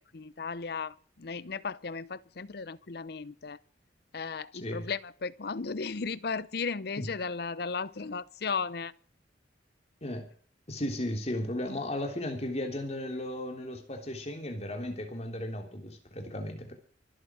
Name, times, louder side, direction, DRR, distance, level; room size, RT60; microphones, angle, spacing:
voice 1, 0.1-3.6 4.1-8.9, left 5 dB, 60° left, 0.7 m, -35 dB
voice 2, 10.7-16.7, left 1 dB, 35° left, 3.4 m, -35 dB
24.0 x 8.1 x 6.3 m
head